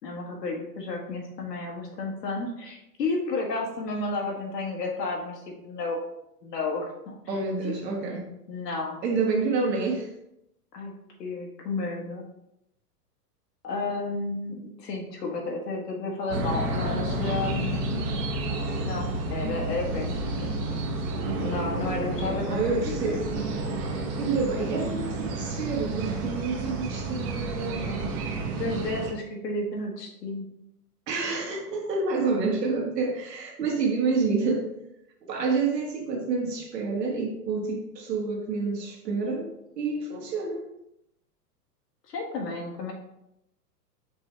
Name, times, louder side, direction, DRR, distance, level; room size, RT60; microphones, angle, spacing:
voice 1, 0.0-6.0 6.4-7.3 7.6-7.7 8.5-9.0 10.7-10.9 11.2-12.2 13.6-18.2 18.8-20.6 21.4-23.2 27.8-28.2 28.6-30.5 42.1-42.9, left 3 dB, 85° left, 0 dB, 1.5 m, -32 dB
voice 2, 7.3-8.3 9.0-10.1 22.2-23.2 24.2-27.9 31.1-34.7 35.2-39.5 39.8-40.7, right 4 dB, 85° right, 1 dB, 1.5 m, -28 dB
sound 1, 16.3-29.1, right 2 dB, 30° right, 0.7 m, -30 dB
5.3 x 3.1 x 3.2 m, 0.82 s
hypercardioid pair, 125°, 48 cm